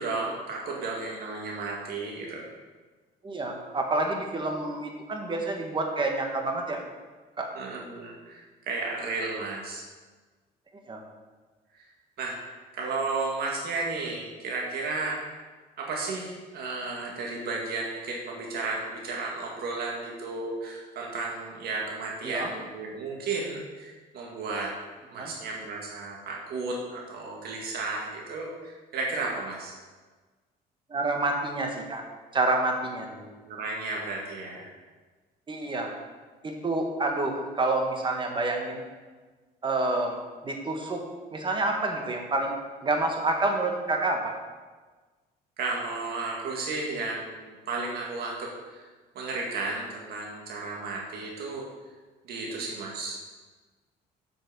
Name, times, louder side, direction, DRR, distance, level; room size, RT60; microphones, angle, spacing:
voice 1, 0.0-2.5 7.5-9.8 11.7-11.9 12.2-15.4 15.8-24.7 25.1-29.7 33.1-34.7 45.6-48.9 49.1-51.7 52.2-53.2, right 3 dB, 70° right, -1 dB, 1.9 m, -33 dB
voice 2, 3.2-6.8 7.4-7.5 10.9-11.0 22.2-22.5 25.1-25.3 30.9-32.0 32.3-33.1 35.5-35.9 36.4-38.8 39.6-40.2 40.4-41.0 41.3-42.5 42.8-44.3, right 2 dB, 30° right, 2 dB, 1.6 m, -28 dB
7.6 x 6.2 x 6.3 m, 1.3 s
cardioid pair, 110°, 17 cm